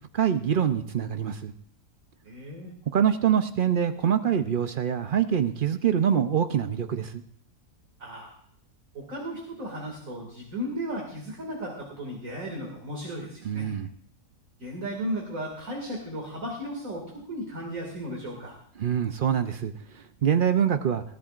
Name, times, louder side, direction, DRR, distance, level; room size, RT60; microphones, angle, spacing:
voice 1, 0.1-1.5 2.9-7.2 13.4-13.9 18.8-21.0, right 8 dB, 80° right, 8 dB, 0.4 m, -25 dB
voice 2, 2.2-2.7 8.0-8.3 8.9-13.7 14.6-18.6, equal, 55° right, 0 dB, 2.7 m, -35 dB
21.5 x 14.5 x 2.5 m, 0.65 s
omnidirectional pair, 1.7 m